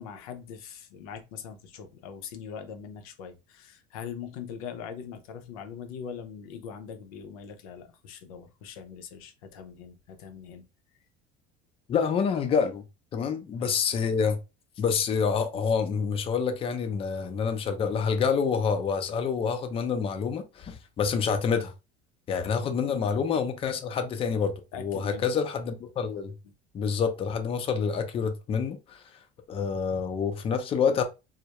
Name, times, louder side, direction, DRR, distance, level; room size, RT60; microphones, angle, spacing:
voice 1, 0.0-10.7 13.6-13.9 22.5-22.7 24.7-25.2 26.2-26.3, left 7 dB, 90° left, 0.5 m, -42 dB
voice 2, 11.9-12.8 13.1-14.4 14.8-21.7 22.3-26.3 26.7-29.0 29.5-31.0, left 6 dB, 30° left, 0.5 m, -27 dB
2.2 x 2.0 x 2.8 m
supercardioid pair, 110°, 18 cm